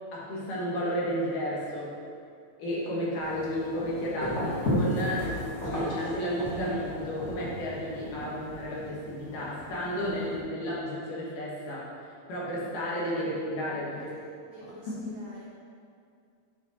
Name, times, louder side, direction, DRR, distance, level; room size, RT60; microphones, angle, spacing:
voice 1, 0.1-1.9 2.6-11.9 12.3-14.1 14.6-14.7, equal, 80° left, -6 dB, 3.1 m, -32 dB
sound 1, 3.2-10.4, equal, 55° left, 0.7 m, -35 dB
voice 2, 13.9-15.4, right 1 dB, 90° right, -4 dB, 1.3 m, -49 dB
7.6 x 4.9 x 4.1 m, 2.4 s
omnidirectional pair, 3.7 m